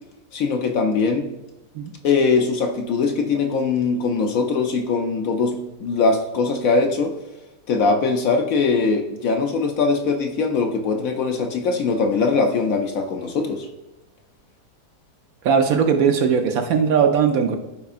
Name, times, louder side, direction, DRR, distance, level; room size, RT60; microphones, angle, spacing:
voice 1, 0.3-1.3 2.0-7.1 7.7-13.7, left 4 dB, 65° left, 4 dB, 1.0 m, -21 dB
voice 2, 15.4-17.6, right 6 dB, 65° right, 5 dB, 1.0 m, -19 dB
13.5 x 4.6 x 2.5 m, 0.96 s
omnidirectional pair, 1.7 m